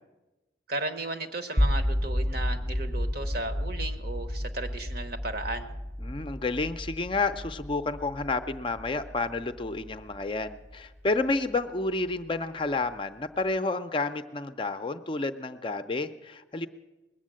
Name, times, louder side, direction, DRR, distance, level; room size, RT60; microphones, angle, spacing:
voice 1, 0.7-5.7, right 2 dB, 50° right, 8 dB, 1.0 m, -35 dB
sound 1, 1.6-11.6, equal, 15° right, 0.6 m, -32 dB
voice 2, 6.0-16.7, left 3 dB, 25° left, 8 dB, 0.5 m, -30 dB
20.5 x 7.4 x 7.5 m, 1.1 s
head